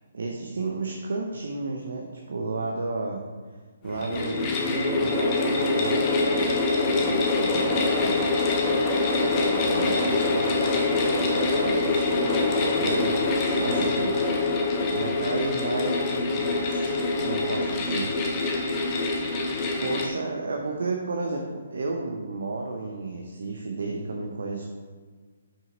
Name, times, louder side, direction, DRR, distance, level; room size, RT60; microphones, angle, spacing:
voice 1, 0.1-3.2 3.8-8.3 9.2-14.1 14.9-18.1 19.8-24.7, right 3 dB, 70° right, 1 dB, 0.8 m, -32 dB
sound 1, 3.8-20.1, left 3 dB, 30° left, 1.0 m, -25 dB
5.8 x 5.7 x 4.0 m, 1.5 s
figure-of-eight pair, 135°, 0 cm